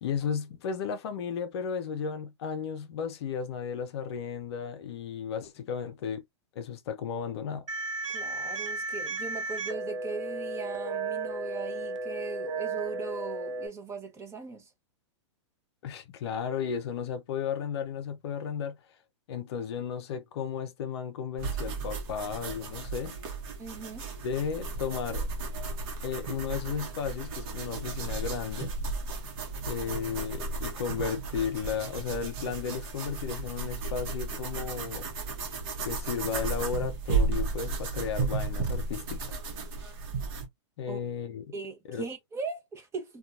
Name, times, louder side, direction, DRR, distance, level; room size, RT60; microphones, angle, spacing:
voice 1, 0.0-6.2 6.6-7.7 15.8-18.8 19.3-23.1 24.2-25.3 26.0-28.7 29.7-35.1 35.8-39.4 40.8-41.4 41.9-42.0, left 7 dB, 60° left, 0.5 m, -34 dB
sound 1, 7.7-13.7, right 3 dB, 85° right, 0.6 m, -34 dB
voice 2, 8.1-14.7 23.6-24.1 40.9-41.0 41.5-43.2, right 4 dB, 15° right, 0.8 m, -39 dB
sound 2, 21.4-40.5, right 4 dB, 50° right, 0.9 m, -34 dB
2.7 x 2.3 x 2.3 m
hypercardioid pair, 115°, 16 cm